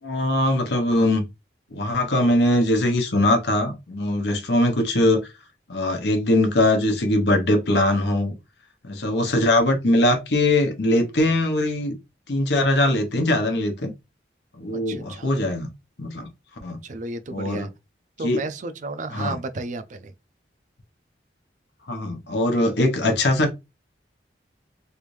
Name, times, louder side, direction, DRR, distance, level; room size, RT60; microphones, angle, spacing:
voice 1, 0.0-1.2 1.7-5.3 5.7-8.3 8.8-12.0 12.3-13.9 14.5-15.7 16.0-16.3 16.6-16.8 17.3-17.7 18.2-18.4 19.1-19.3 21.9-23.5, left 1 dB, 70° left, 0.9 m, -21 dB
voice 2, 14.7-15.3 16.8-17.7 18.2-20.1, right 3 dB, 45° right, 0.4 m, -33 dB
3.3 x 2.6 x 3.1 m
head